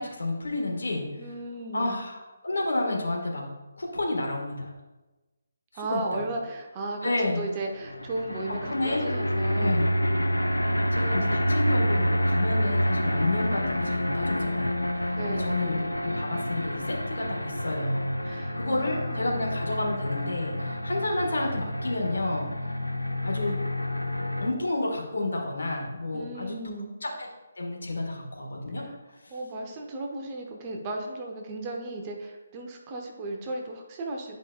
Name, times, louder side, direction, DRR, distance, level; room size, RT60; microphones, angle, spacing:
voice 1, 0.0-1.1 1.7-2.2 2.4-3.5 3.8-4.7 5.9-6.2 7.0-7.4 8.7-9.0 9.5-9.9 10.9-22.7 23.2-23.6 24.4-26.6 27.0-27.3 27.6-28.9 29.2-29.3, left 2 dB, 65° left, -1 dB, 1.6 m, -30 dB
voice 2, 1.2-2.0 5.7-9.8 15.1-15.6 18.2-19.4 26.1-26.9 28.8-29.0 29.3-34.4, right 2 dB, 25° right, 1 dB, 0.9 m, -35 dB
sound 1, 7.7-24.5, equal, 85° left, 0.6 m, -28 dB
11.0 x 5.1 x 2.4 m, 1.1 s
figure-of-eight pair, 145°, 0 cm